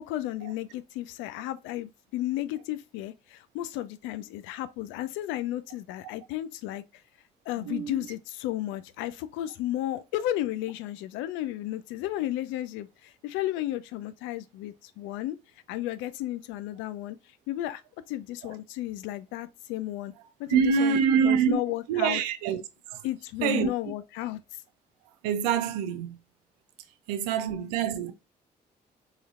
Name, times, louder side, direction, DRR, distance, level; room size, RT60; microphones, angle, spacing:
voice 1, 0.1-6.8 7.5-15.4 15.7-17.2 17.5-17.8 18.1-20.1 20.4-22.2 23.0-24.4, left 14 dB, 80° left, 0.4 m, -33 dB
voice 2, 7.6-7.9 20.5-21.6 21.9-22.6 22.9-23.0 23.4-23.7 25.2-26.2 27.1-28.1, right 7 dB, 85° right, 0.4 m, -25 dB
4.0 x 3.1 x 2.4 m
hypercardioid pair, 45°, 20 cm